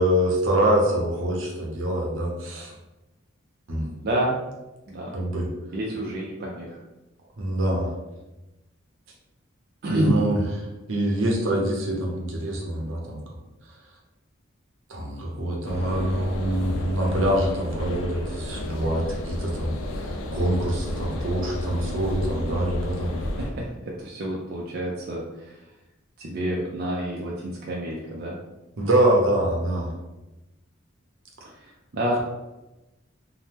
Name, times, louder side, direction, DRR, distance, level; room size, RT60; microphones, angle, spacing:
voice 1, 0.0-2.7 3.7-3.9 5.1-5.5 7.4-7.9 9.9-10.3 10.9-13.2 14.9-19.7 20.3-23.1 28.8-29.9, right 1 dB, 75° right, -1 dB, 0.7 m, -24 dB
voice 2, 4.0-4.4 4.9-5.2 5.7-6.8 9.8-10.4 23.2-25.7 26.2-28.4 31.5-32.2, right 1 dB, 50° right, -3 dB, 0.4 m, -29 dB
sound 1, 15.6-23.5, left 1 dB, 85° left, 0.4 m, -32 dB
2.8 x 2.0 x 3.4 m, 1.0 s
head